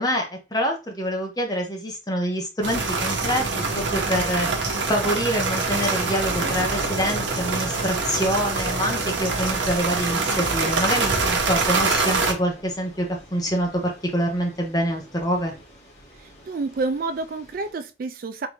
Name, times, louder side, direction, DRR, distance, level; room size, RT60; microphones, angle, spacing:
voice 1, 0.0-15.5, equal, 20° left, 1.1 m, -26 dB
sound 1, 2.6-12.3, right 3 dB, 85° right, 1.1 m, -25 dB
Thunder / Rain, 4.7-17.7, equal, 35° left, 1.7 m, -42 dB
voice 2, 16.2-18.5, right 3 dB, 50° right, 0.3 m, -29 dB
3.6 x 3.4 x 3.0 m
head